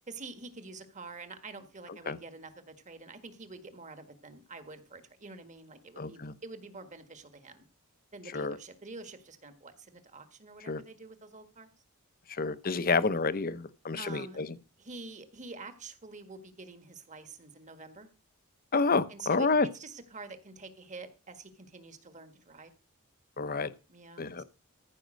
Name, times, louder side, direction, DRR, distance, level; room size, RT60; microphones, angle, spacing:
voice 1, 0.1-7.7 8.1-11.7 14.0-14.4 14.8-18.1 19.1-22.7 23.9-24.4, right 3 dB, 35° right, 1.6 m, -47 dB
voice 2, 6.0-6.3 8.3-8.6 10.7-10.8 12.3-14.5 18.7-19.7 23.4-23.7 24.2-24.4, left 4 dB, 40° left, 0.8 m, -29 dB
14.5 x 5.4 x 6.4 m
head